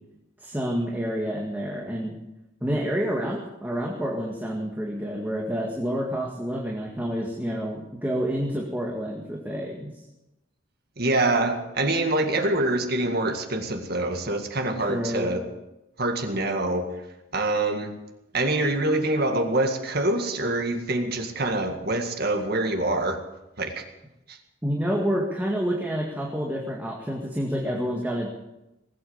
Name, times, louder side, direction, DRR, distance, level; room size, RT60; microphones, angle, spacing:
voice 1, 0.4-2.1 2.6-9.9 14.8-15.3 24.6-28.3, equal, 10° right, -2 dB, 1.9 m, -28 dB
voice 2, 11.0-15.4 16.0-16.9 17.3-17.9 18.3-23.2 23.6-23.8 24.3-24.4, right 2 dB, 50° right, 5 dB, 1.9 m, -25 dB
19.5 x 8.7 x 8.0 m, 0.93 s
head